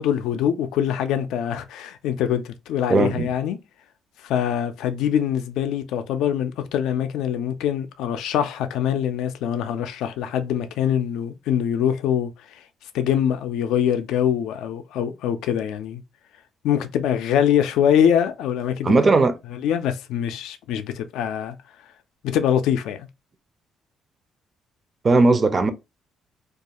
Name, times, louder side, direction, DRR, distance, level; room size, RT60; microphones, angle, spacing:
voice 1, 0.0-3.6 4.2-12.6 12.9-16.0 16.6-19.0 19.5-21.5 22.2-23.1, left 9 dB, 90° left, 0.3 m, -23 dB
voice 2, 2.9-3.3 18.8-19.4 25.0-25.7, right 3 dB, 30° right, 0.4 m, -17 dB
2.4 x 2.3 x 2.8 m
cardioid pair, 105°, 0 cm